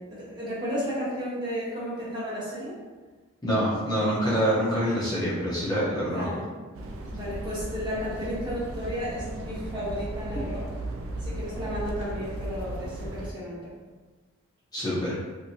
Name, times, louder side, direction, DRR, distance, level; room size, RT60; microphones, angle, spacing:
voice 1, 0.0-2.7 6.0-6.4 7.1-10.6 11.2-13.7, equal, 20° right, -9 dB, 0.8 m, -33 dB
voice 2, 3.4-6.3 14.7-15.2, equal, 20° left, -9 dB, 0.7 m, -26 dB
sound 1, 6.7-13.3, right 1 dB, 65° right, 0.3 m, -36 dB
2.9 x 2.6 x 2.7 m, 1.3 s
head